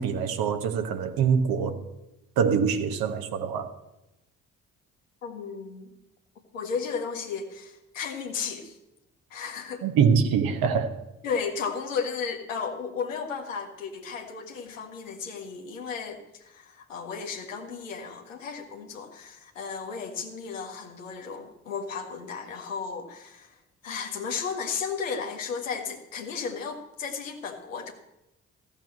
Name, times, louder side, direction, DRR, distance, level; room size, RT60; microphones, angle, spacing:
voice 1, 0.0-1.8 2.4-3.7 9.8-10.9, right 6 dB, 65° right, 1.3 m, -24 dB
voice 2, 5.2-5.9 6.5-8.8 9.3-9.8 11.2-23.6 23.8-27.9, left 5 dB, 85° left, 1.3 m, -34 dB
14.5 x 7.1 x 7.7 m
figure-of-eight pair, 40°, 38 cm